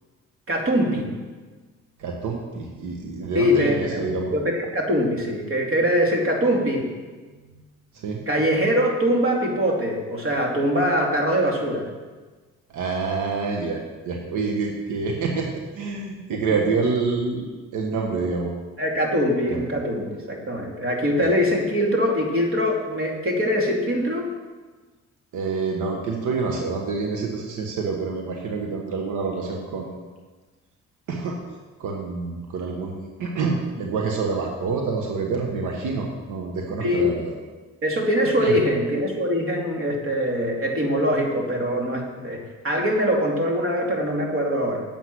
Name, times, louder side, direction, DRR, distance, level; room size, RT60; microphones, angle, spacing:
voice 1, 0.5-1.1 3.3-6.9 8.3-11.8 18.8-24.3 36.8-37.1 37.8-44.8, equal, 45° right, 0 dB, 2.7 m, -23 dB
voice 2, 2.0-4.3 8.0-8.2 12.7-13.8 14.0-17.5 17.7-18.5 21.2-21.3 25.3-30.1 31.1-31.4 31.8-37.3 38.4-38.5, right 4 dB, 80° right, 1 dB, 1.4 m, -27 dB
9.1 x 8.2 x 6.3 m, 1.3 s
cardioid pair, 90°, 30 cm